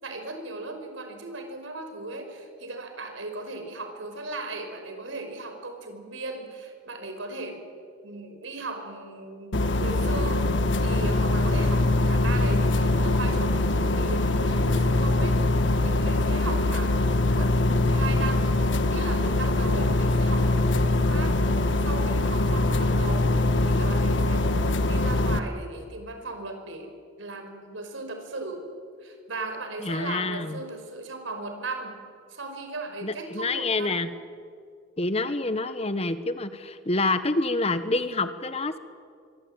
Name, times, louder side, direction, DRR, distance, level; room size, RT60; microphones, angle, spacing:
voice 1, 0.0-7.6 8.0-15.4 15.8-18.6 18.9-21.4 21.8-23.3 23.6-24.6 24.9-26.9 27.2-28.6 29.0-32.0 32.3-34.0, right 2 dB, 90° right, 6 dB, 5.3 m, -37 dB
sound 1, 9.5-25.4, left 2 dB, 65° left, 1.5 m, -23 dB
voice 2, 29.8-30.6 33.0-34.1 35.0-38.8, left 2 dB, 35° left, 11 dB, 1.3 m, -27 dB
24.5 x 24.5 x 9.0 m, 2.2 s
head